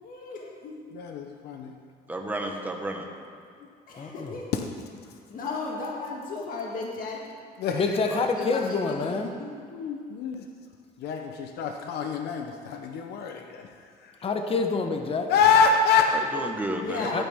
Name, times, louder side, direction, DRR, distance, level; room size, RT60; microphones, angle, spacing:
voice 1, 0.0-0.9 2.4-2.5 3.9-4.5 5.3-7.2 7.9-9.5 16.8-17.2, left 3 dB, 55° left, -2 dB, 1.8 m, -35 dB
voice 2, 0.9-1.7 7.6-8.2 9.7-10.5 11.0-13.7 14.0-14.1 15.3-16.5, left 5 dB, 75° left, 4 dB, 0.9 m, -25 dB
voice 3, 2.1-3.1 8.1-8.2 16.3-17.2, right 1 dB, 10° right, 1 dB, 1.4 m, -32 dB
voice 4, 4.0-4.3 7.7-9.3 14.2-15.3 17.1-17.2, left 4 dB, 35° left, 5 dB, 1.0 m, -27 dB
15.5 x 9.2 x 3.7 m, 2.2 s
cardioid pair, 110°, 17 cm